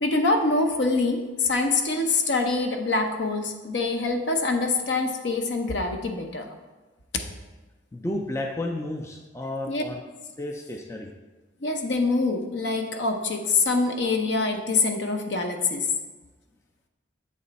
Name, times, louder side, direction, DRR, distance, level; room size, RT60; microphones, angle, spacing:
voice 1, 0.0-6.5 9.7-9.8 11.6-15.9, left 3 dB, 70° left, 4 dB, 0.6 m, -25 dB
voice 2, 7.9-10.0 10.4-11.1, left 1 dB, 15° left, 1 dB, 0.3 m, -32 dB
7.5 x 3.1 x 4.0 m, 1.2 s
head